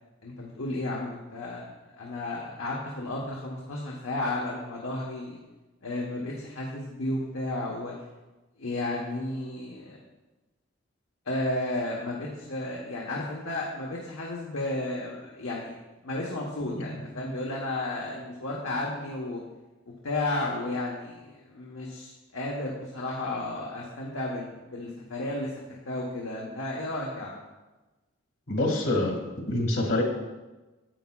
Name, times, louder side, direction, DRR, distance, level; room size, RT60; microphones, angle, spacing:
voice 1, 0.2-5.4 5.8-7.9 8.6-10.0 11.2-15.8 16.0-19.4 20.0-27.4, left 2 dB, 90° left, -2 dB, 1.1 m, -33 dB
voice 2, 28.5-29.2 29.5-30.0, left 1 dB, 70° left, 1 dB, 1.6 m, -26 dB
10.0 x 8.3 x 2.3 m, 1.1 s
head